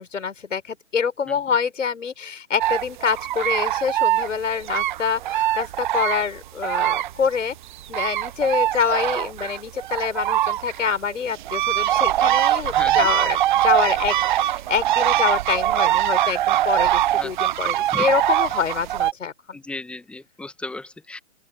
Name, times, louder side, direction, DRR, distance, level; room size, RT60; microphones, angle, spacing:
voice 1, 0.0-7.6 7.9-19.6, left 6 dB, 80° left, 5.5 m, -26 dB
sound 1, 2.6-7.4 7.6-19.1, right 13 dB, 40° right, 0.8 m, -22 dB
voice 2, 12.7-13.1 17.2-17.3 17.9-18.0 19.5-21.2, left 2 dB, 5° left, 1.0 m, -35 dB
open air
hypercardioid pair, 140°, 37 cm